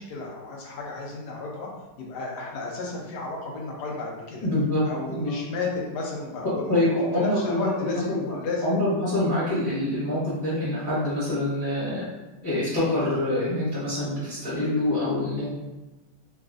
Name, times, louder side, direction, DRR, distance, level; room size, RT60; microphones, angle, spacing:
voice 1, 0.0-1.7 2.0-4.5 4.8-6.8 7.2-8.8, left 3 dB, 75° left, -2 dB, 1.2 m, -32 dB
voice 2, 4.4-5.3 6.7-7.7 8.1-12.1 12.4-15.5, left 1 dB, 20° left, -10 dB, 0.6 m, -25 dB
3.2 x 2.3 x 2.4 m, 1.1 s
omnidirectional pair, 1.8 m